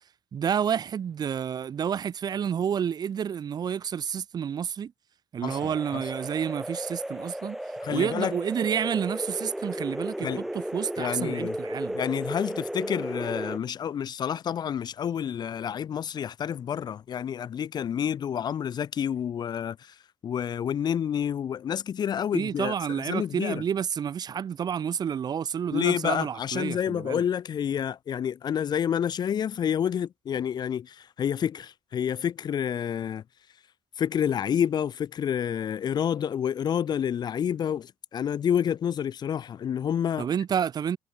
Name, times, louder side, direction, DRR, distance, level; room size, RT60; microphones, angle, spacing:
voice 1, 0.3-4.9 5.3-7.6 7.9-12.0 22.3-27.2 40.2-41.0, right 8 dB, 45° right, 5.2 m, -29 dB
voice 2, 5.4-6.0 7.8-8.3 10.2-10.5 11.0-11.5 11.9-20.0 20.2-23.6 25.7-33.2 34.0-40.3, left 8 dB, 45° left, 1.9 m, -29 dB
sound 1, 5.5-13.6, right 1 dB, 5° right, 1.0 m, -34 dB
cardioid pair, 135°, 10 cm